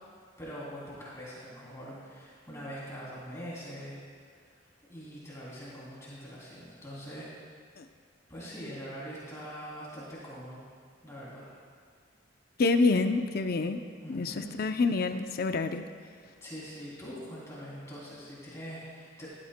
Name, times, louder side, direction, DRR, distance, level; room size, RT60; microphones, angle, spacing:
voice 1, 0.4-4.0 4.9-7.3 8.3-10.7 11.0-11.5 14.0-14.5 16.4-19.3, equal, 15° left, -8 dB, 2.9 m, -43 dB
voice 2, 12.6-13.8 14.1-15.8, left 3 dB, 55° left, 8 dB, 0.5 m, -27 dB
14.5 x 13.0 x 2.2 m, 2.1 s
head